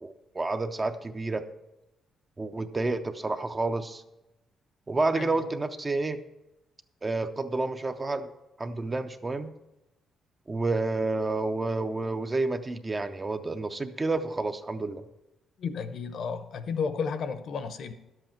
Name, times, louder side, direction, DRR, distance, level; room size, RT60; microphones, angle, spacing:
voice 1, 0.0-1.4 2.4-4.0 4.9-6.2 7.0-8.3 8.6-9.5 10.5-15.0, right 3 dB, 15° right, 9 dB, 0.4 m, -29 dB
voice 2, 5.1-5.5 15.6-17.9, left 5 dB, 50° left, 11 dB, 0.7 m, -33 dB
11.0 x 7.8 x 4.5 m, 0.97 s
cardioid pair, 160°, 0 cm